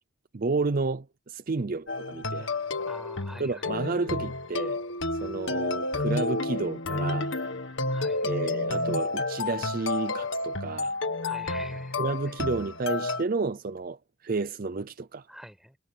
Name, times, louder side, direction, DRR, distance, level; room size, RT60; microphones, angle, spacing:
voice 1, 0.3-2.5 3.4-4.8 5.2-7.3 8.2-10.9 12.0-15.3, right 3 dB, 40° right, 0.5 m, -31 dB
sound 1, 1.9-13.2, left 2 dB, 60° left, 1.9 m, -30 dB
voice 2, 2.7-3.7 7.9-8.4 11.2-12.4 15.3-15.8, equal, ahead, 6.2 m, -46 dB
head